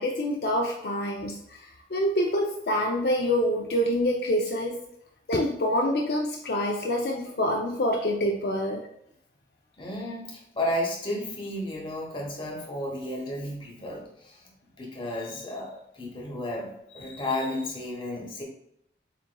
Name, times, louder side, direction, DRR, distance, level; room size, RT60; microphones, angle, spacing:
voice 1, 0.0-4.8 5.3-8.9, equal, 60° left, 0 dB, 0.4 m, -26 dB
voice 2, 9.8-14.5 14.8-18.4, left 1 dB, 30° left, -1 dB, 1.1 m, -33 dB
7.2 x 2.9 x 2.2 m, 0.75 s
head